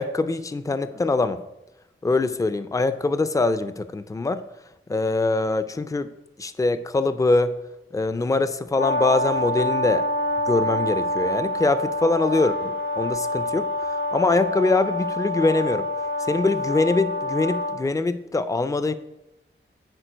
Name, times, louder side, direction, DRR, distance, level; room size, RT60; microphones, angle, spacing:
voice 1, 0.0-1.4 2.0-4.4 4.9-6.1 6.4-7.6 7.9-10.1 10.5-15.9 16.2-18.9, left 3 dB, 15° left, 12 dB, 0.4 m, -23 dB
Brass instrument, 8.8-17.8, left 1 dB, 70° left, 0.7 m, -26 dB
9.0 x 4.2 x 5.1 m, 0.93 s
wide cardioid pair, 75°, 21 cm